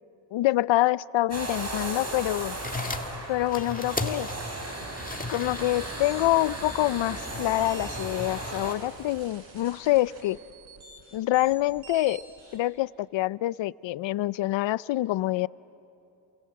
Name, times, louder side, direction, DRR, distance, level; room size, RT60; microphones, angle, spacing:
voice 1, 0.3-2.6 3.3-4.3 5.3-10.4 11.1-12.2 12.5-15.5, left 16 dB, 70° left, 20 dB, 0.6 m, -26 dB
sound 1, 1.3-8.7, right 2 dB, 30° right, 5.6 m, -36 dB
sound 2, 2.1-12.6, right 3 dB, 80° right, 5.4 m, -50 dB
sound 3, 2.4-9.3, left 3 dB, 15° left, 1.9 m, -38 dB
28.0 x 27.5 x 7.8 m, 2.8 s
cardioid pair, 70°, 47 cm